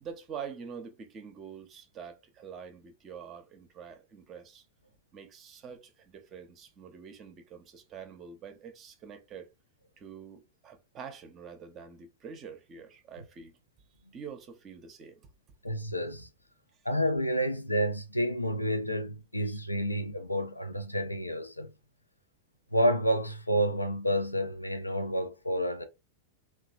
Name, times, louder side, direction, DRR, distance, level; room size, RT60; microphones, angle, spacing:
voice 1, 0.0-4.6 5.1-9.5 10.0-13.5 14.1-15.2 19.5-19.6, right 7 dB, 30° right, 0.6 m, -45 dB
voice 2, 15.6-16.3 16.8-21.7 22.7-25.8, equal, 85° left, 0.5 m, -29 dB
2.9 x 2.3 x 2.5 m
figure-of-eight pair, 90°, 0 cm